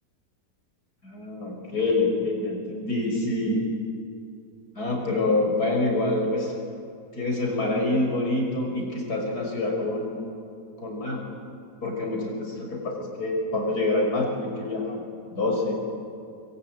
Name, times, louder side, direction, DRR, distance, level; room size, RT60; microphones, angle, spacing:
voice 1, 1.0-3.6 4.7-6.5 7.1-10.3 10.8-11.3 11.8-15.0 15.3-15.7, left 2 dB, 65° left, 1 dB, 6.2 m, -26 dB
25.0 x 24.0 x 9.2 m, 2.5 s
omnidirectional pair, 1.8 m